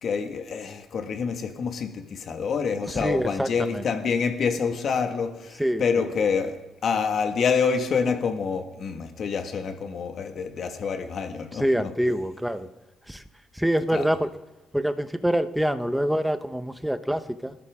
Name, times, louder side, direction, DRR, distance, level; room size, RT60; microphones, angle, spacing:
voice 1, 0.0-6.6 6.8-11.9 13.9-14.0, left 5 dB, 60° left, 6 dB, 1.8 m, -27 dB
voice 2, 2.9-3.8 5.6-5.8 11.5-12.7 13.1-13.2 13.5-14.3 14.7-17.6, equal, 5° right, 9 dB, 1.0 m, -25 dB
26.5 x 13.0 x 3.7 m, 1.0 s
cardioid pair, 90°, 0 cm